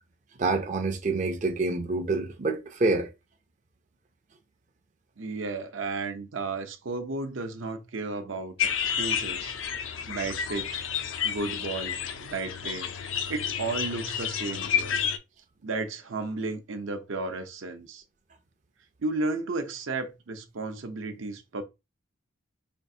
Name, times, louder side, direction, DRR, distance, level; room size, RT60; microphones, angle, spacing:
voice 1, 0.4-3.1, right 3 dB, 40° right, 0.5 m, -27 dB
voice 2, 5.2-8.7 8.9-9.5 10.1-10.8 11.2-12.9 13.3-15.0 15.6-18.0 19.0-21.6, right 3 dB, 75° right, 0.7 m, -33 dB
sound 1, 8.6-15.2, left 8 dB, 70° left, 0.4 m, -30 dB
4.3 x 2.5 x 2.7 m
head